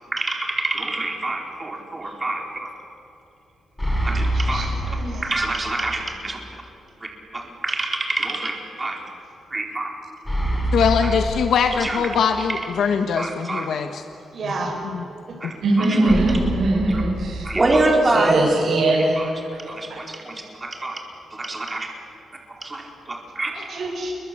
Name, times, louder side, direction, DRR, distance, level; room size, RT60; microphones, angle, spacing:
voice 1, 0.1-2.7 4.0-4.7 5.2-6.4 7.0-9.0 9.5-9.9 11.0-11.2 11.7-12.1 13.1-14.0 15.4-16.2 16.9-17.0 17.4-19.3 19.7-21.0 21.3-21.9 22.6-23.5, right 2 dB, 20° right, 1 dB, 4.6 m, -26 dB
sound 1, 3.8-5.8 6.1-6.2 10.2-12.2 16.1-18.0, equal, 5° left, 6.3 m, -26 dB
voice 2, 4.3-5.3 14.3-14.9 15.3-15.4 23.5-24.2, right 2 dB, 50° right, 2 dB, 6.5 m, -31 dB
voice 3, 10.7-14.0, left 6 dB, 70° left, 6 dB, 1.4 m, -21 dB
voice 4, 15.6-17.5 18.1-19.2, right 2 dB, 75° right, -4 dB, 6.8 m, -20 dB
29.0 x 22.5 x 8.6 m, 2.8 s
wide cardioid pair, 150°, 0 cm